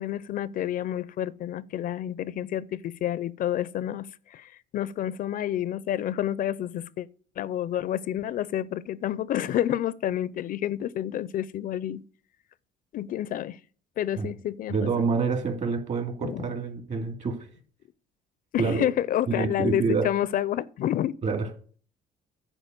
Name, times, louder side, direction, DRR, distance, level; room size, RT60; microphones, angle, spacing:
voice 1, 0.0-7.1 7.4-12.0 12.9-13.6 14.0-15.1 16.2-16.5 18.5-21.1, left 11 dB, 55° left, 0.5 m, -29 dB
voice 2, 14.7-17.5 18.6-18.8 19.3-20.1 21.2-21.5, right 4 dB, 45° right, 2.6 m, -27 dB
11.0 x 4.5 x 8.0 m
cardioid pair, 110°, 17 cm